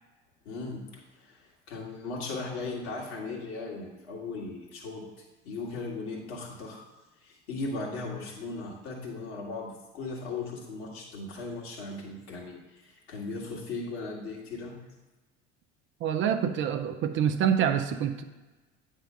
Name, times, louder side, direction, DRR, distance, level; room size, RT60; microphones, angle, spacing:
voice 1, 0.5-6.8 7.2-14.8, left 3 dB, 65° left, -3 dB, 2.0 m, -38 dB
voice 2, 16.0-18.2, right 8 dB, 35° right, 7 dB, 0.5 m, -26 dB
9.0 x 3.7 x 5.3 m, 1.2 s
figure-of-eight pair, 65°, 36 cm